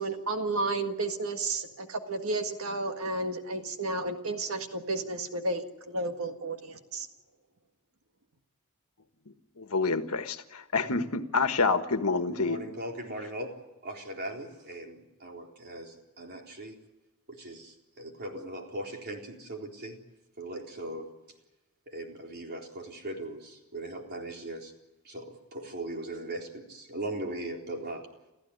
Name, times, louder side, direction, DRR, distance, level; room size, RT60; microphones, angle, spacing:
voice 1, 0.0-7.1, right 2 dB, 65° right, 6 dB, 1.8 m, -32 dB
voice 2, 9.6-12.6, left 4 dB, 75° left, 8 dB, 1.5 m, -27 dB
voice 3, 12.4-13.6 13.8-16.8 17.3-20.0 20.4-21.1 21.9-24.7 25.0-28.1, right 1 dB, 45° right, 1 dB, 4.0 m, -39 dB
29.0 x 14.5 x 9.8 m, 0.98 s
head